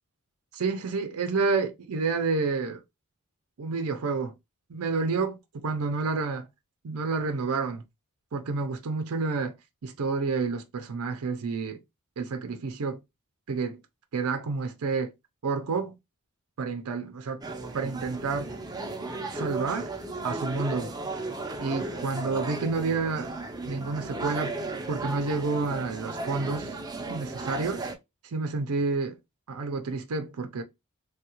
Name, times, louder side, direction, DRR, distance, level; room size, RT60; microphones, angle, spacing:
voice 1, 0.5-2.8 3.6-4.3 4.7-6.5 6.8-7.8 8.3-9.5 9.8-11.8 12.2-13.0 13.5-13.8 14.1-15.1 15.4-16.0 16.6-17.4 17.7-18.5 19.3-19.9 20.2-20.9 21.6-23.3 23.7-24.6 24.9-26.8 27.1-27.9 28.3-29.2 29.5-30.6, right 4 dB, 80° right, 0.5 m, -29 dB
sound 1, 17.4-28.0, right 2 dB, 20° right, 0.5 m, -35 dB
3.2 x 2.3 x 2.9 m
head